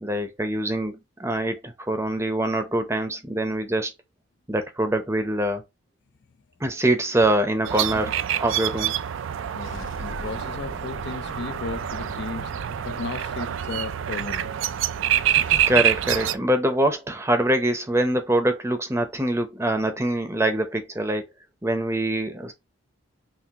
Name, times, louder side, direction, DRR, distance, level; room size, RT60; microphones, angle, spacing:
voice 1, 0.0-3.9 4.5-5.6 6.6-8.9 15.4-21.3 21.6-22.5, right 1 dB, 15° right, 0.7 m, -24 dB
sound 1, 7.6-8.2 9.6-15.7, left 1 dB, 75° left, 1.0 m, -43 dB
sound 2, 7.7-16.4, right 10 dB, 70° right, 0.4 m, -26 dB
voice 2, 9.5-14.6, left 4 dB, 55° left, 0.4 m, -35 dB
6.0 x 2.5 x 2.9 m
head